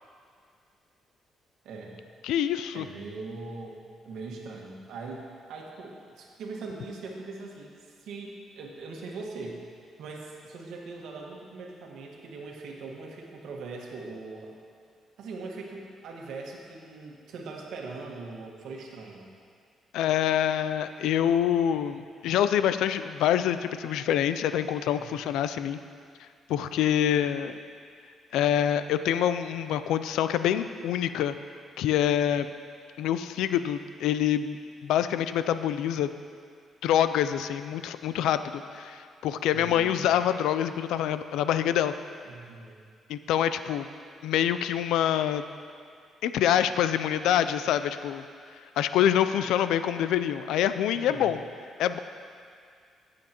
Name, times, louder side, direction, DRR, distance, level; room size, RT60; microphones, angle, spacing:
voice 1, 1.6-1.9 2.7-3.8 4.0-9.6 10.0-14.5 15.2-19.3 24.8-25.1 39.5-40.1 42.2-42.8 50.9-51.3, right 3 dB, 80° right, -1 dB, 1.5 m, -41 dB
voice 2, 2.2-2.9 19.9-25.8 26.5-27.6 28.3-31.3 31.8-32.5 33.0-34.6 34.8-36.1 36.8-41.9 43.1-43.9 44.2-45.4 46.2-48.2 48.8-51.4 51.8-52.0, left 10 dB, 90° left, 11 dB, 0.3 m, -26 dB
15.5 x 7.6 x 2.9 m, 2.2 s
cardioid pair, 90°, 0 cm